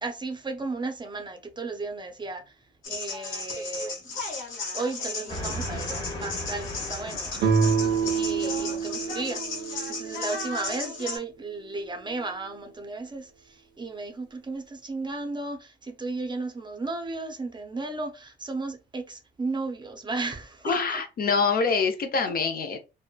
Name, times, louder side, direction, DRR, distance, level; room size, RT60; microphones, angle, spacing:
voice 1, 0.0-2.4 2.9-4.2 4.7-7.5 8.2-20.8, right 3 dB, 20° right, 0.5 m, -34 dB
sound 1, 2.8-11.2, left 3 dB, 80° left, 1.2 m, -35 dB
Train, 5.3-9.2, equal, 25° left, 0.9 m, -38 dB
sound 2, 7.4-11.0, right 5 dB, 75° right, 0.7 m, -27 dB
voice 2, 20.6-22.8, left 5 dB, 50° left, 0.6 m, -25 dB
2.9 x 2.1 x 2.2 m
cardioid pair, 90°, 20 cm